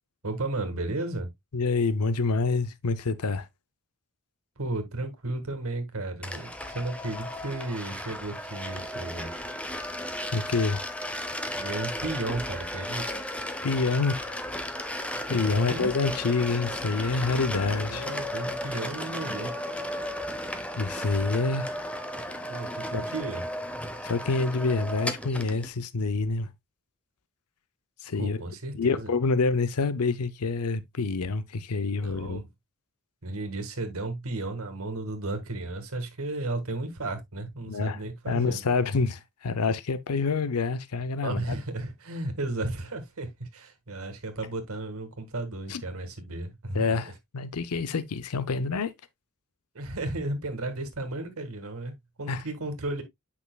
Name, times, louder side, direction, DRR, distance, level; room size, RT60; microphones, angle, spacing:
voice 1, 0.2-1.3 4.6-9.5 11.5-13.1 15.1-15.9 17.9-19.5 22.5-23.4 28.2-29.1 32.0-32.5 33.2-38.6 41.2-46.9 49.8-53.0, right 2 dB, 70° right, 1.8 m, -34 dB
voice 2, 1.5-3.5 10.3-10.8 13.6-14.4 15.3-18.1 20.8-21.7 22.9-23.0 24.0-26.5 28.0-28.4 28.7-32.4 37.7-41.4 45.7-45.8 46.7-48.9 52.3-52.4, left 4 dB, 90° left, 0.6 m, -27 dB
sound 1, 6.2-25.7, left 1 dB, 5° left, 0.7 m, -35 dB
8.3 x 5.7 x 2.3 m
head